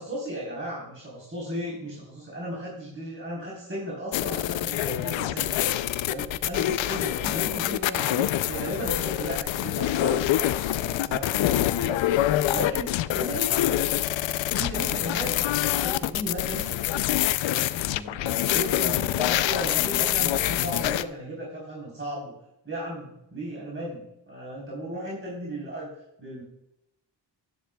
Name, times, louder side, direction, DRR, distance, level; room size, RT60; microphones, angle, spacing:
voice 1, 0.0-5.6 6.1-12.0 12.5-13.9 14.5-15.4 15.7-17.1 17.9-22.3 22.6-25.9 26.2-26.4, equal, 25° right, -5 dB, 3.7 m, -35 dB
sound 1, 4.1-21.0, left 13 dB, 80° left, 0.6 m, -26 dB
11.5 x 10.5 x 2.3 m, 0.84 s
cardioid pair, 80°, 45 cm